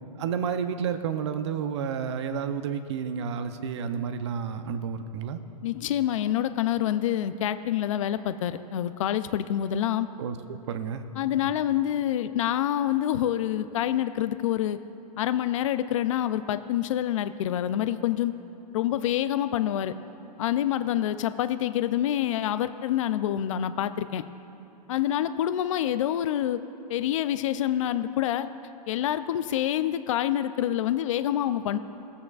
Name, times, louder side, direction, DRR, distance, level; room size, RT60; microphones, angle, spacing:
voice 1, 0.2-5.4 10.2-11.0 11.4-11.5, right 7 dB, 45° right, 9 dB, 0.6 m, -31 dB
voice 2, 5.6-10.1 11.2-14.8 15.2-18.3 18.7-20.0 20.4-24.2 24.9-26.6 26.9-28.5 28.9-31.8, left 11 dB, 50° left, 12 dB, 0.4 m, -27 dB
18.5 x 8.5 x 2.4 m, 2.8 s
hypercardioid pair, 170°, 21 cm